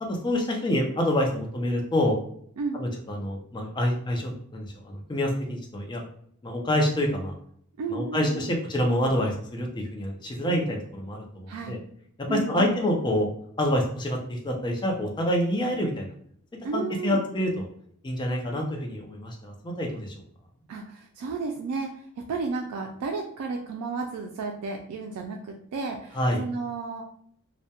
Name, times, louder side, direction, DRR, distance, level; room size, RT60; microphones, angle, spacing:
voice 1, 0.0-2.1 2.7-6.0 6.4-7.3 7.9-11.8 12.3-13.3 13.6-16.1 16.7-17.7 18.0-20.1 26.1-26.4, left 1 dB, 20° left, 0 dB, 0.4 m, -27 dB
voice 2, 7.8-8.5 11.5-11.8 12.3-12.8 16.6-17.3 20.7-27.0, right 4 dB, 85° right, 2 dB, 0.3 m, -33 dB
2.2 x 2.0 x 2.8 m, 0.64 s
head